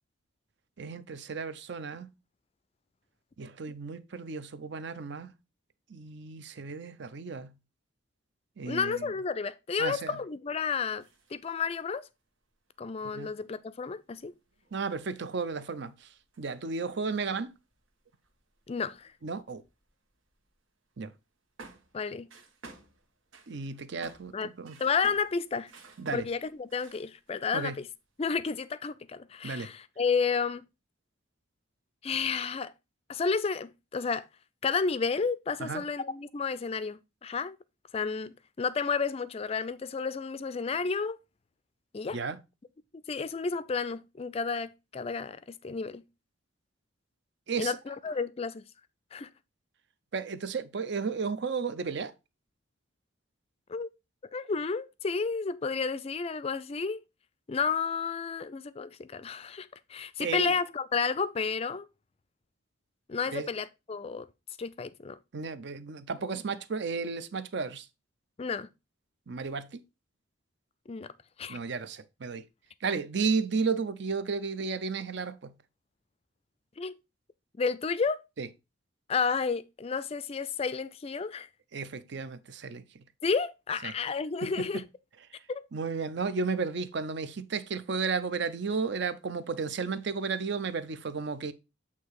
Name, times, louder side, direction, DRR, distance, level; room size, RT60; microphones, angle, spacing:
voice 1, 0.8-2.1 3.4-5.3 5.9-7.5 8.6-9.1 9.8-10.2 13.0-13.3 14.7-16.1 16.4-17.5 19.2-19.6 21.0-21.1 23.5-24.8 26.0-26.3 27.5-27.8 29.4-29.7 35.6-35.8 42.1-42.4 47.5-47.8 50.1-52.1 60.2-60.5 63.3-63.5 65.3-67.9 69.3-69.8 71.5-72.4 72.8-75.5 78.4-78.5 81.7-82.8 83.8-83.9 84.6-84.8 85.7-91.5, right 4 dB, 60° right, 0.6 m, -33 dB
voice 2, 8.7-11.1 11.3-12.1 12.8-14.3 18.7-19.1 21.9-22.3 24.3-24.5 24.8-25.7 26.1-27.9 28.2-30.6 32.0-32.7 33.1-34.3 34.6-37.6 37.9-41.2 41.9-42.2 43.1-46.0 47.6-48.6 49.1-49.3 53.7-53.9 54.3-57.0 57.5-61.9 63.1-64.3 64.6-65.2 68.4-68.7 70.9-71.1 71.4-71.6 76.8-76.9 77.6-78.2 79.1-81.5 83.2-84.8 85.5-85.6, left 5 dB, 30° left, 0.3 m, -31 dB
sound 1, 10.5-11.9 12.5-12.6 12.8-12.9 13.3-20.6 20.9-21.0 21.6-27.4 27.7-28.4, right 3 dB, 85° right, 1.4 m, -55 dB
8.3 x 2.8 x 4.7 m
head